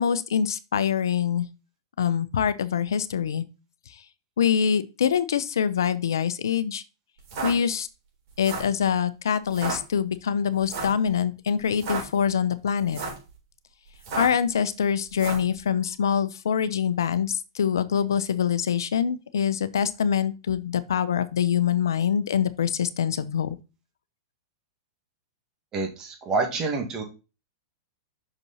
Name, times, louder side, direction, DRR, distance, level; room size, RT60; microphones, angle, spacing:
voice 1, 0.0-1.5 2.0-3.5 4.4-6.8 7.4-7.9 8.4-13.0 14.1-23.6, left 8 dB, 80° left, 0.7 m, -24 dB
sound 1, 7.2-7.5 8.3-8.8 9.5-9.8 10.7-11.0 11.7-12.0 12.8-13.3 14.0-14.4 15.1-15.5, right 4 dB, 55° right, 3.9 m, -32 dB
voice 2, 25.7-27.0, right 3 dB, 30° right, 2.1 m, -27 dB
6.1 x 5.3 x 4.1 m
hypercardioid pair, 110°, 2 cm